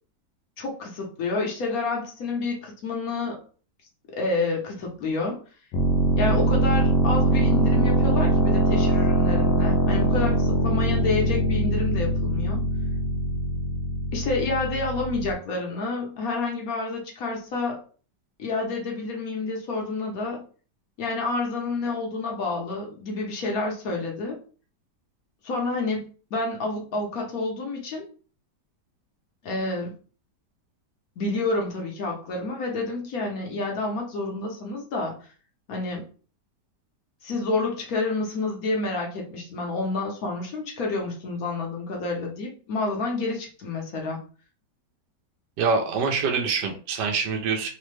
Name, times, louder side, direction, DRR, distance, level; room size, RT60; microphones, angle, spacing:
voice 1, 0.6-3.4 4.2-5.4 6.2-12.6 14.1-17.8 18.4-20.4 21.0-24.4 25.4-28.1 29.4-29.9 31.2-35.3 35.7-36.1 37.2-44.2, left 3 dB, 65° left, 0 dB, 1.0 m, -29 dB
sound 1, 5.7-15.3, right 1 dB, 85° left, 1.3 m, -22 dB
voice 2, 45.6-47.7, right 5 dB, 80° right, 2 dB, 1.2 m, -25 dB
3.2 x 2.1 x 3.1 m, 0.39 s
omnidirectional pair, 1.9 m